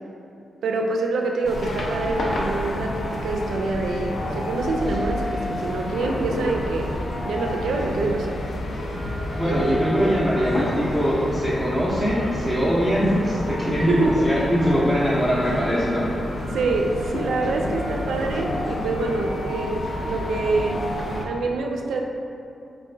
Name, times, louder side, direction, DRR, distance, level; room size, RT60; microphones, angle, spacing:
voice 1, 0.6-8.4 9.4-9.8 10.0-10.2 13.8-14.3 16.5-20.8 21.2-22.0, right 3 dB, 90° right, 1 dB, 0.3 m, -26 dB
sound 1, 1.4-21.2, left 1 dB, 60° left, 0.4 m, -29 dB
voice 2, 9.3-16.1, equal, ahead, -9 dB, 0.6 m, -22 dB
3.4 x 2.5 x 3.1 m, 2.7 s
cardioid pair, 75°, 0 cm